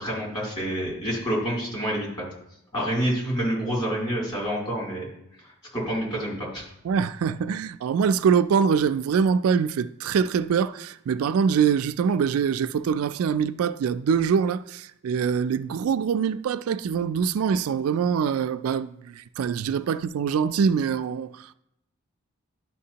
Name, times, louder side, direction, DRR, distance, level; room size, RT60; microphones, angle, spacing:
voice 1, 0.0-2.2 2.7-5.0 5.7-6.7, equal, 25° left, 3.0 m, -28 dB
voice 2, 6.8-21.5, right 6 dB, 80° right, 0.3 m, -24 dB
11.5 x 5.8 x 2.8 m
head